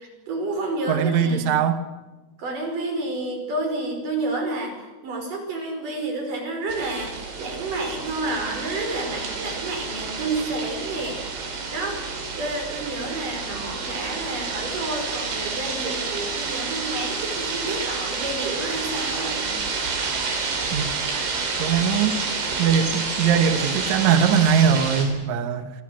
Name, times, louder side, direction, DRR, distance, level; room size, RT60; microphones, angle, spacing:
voice 1, 0.0-1.5 2.4-4.8 5.0-11.2 11.7-12.0 12.4-19.5, right 2 dB, 40° right, 4 dB, 6.6 m, -30 dB
voice 2, 0.9-1.8 20.7-20.9 21.6-22.2 22.6-25.7, right 7 dB, 85° right, 8 dB, 1.6 m, -21 dB
sound 1, 6.7-25.1, right 4 dB, 70° right, 6.9 m, -29 dB
27.0 x 27.0 x 6.5 m, 1.2 s
omnidirectional pair, 5.8 m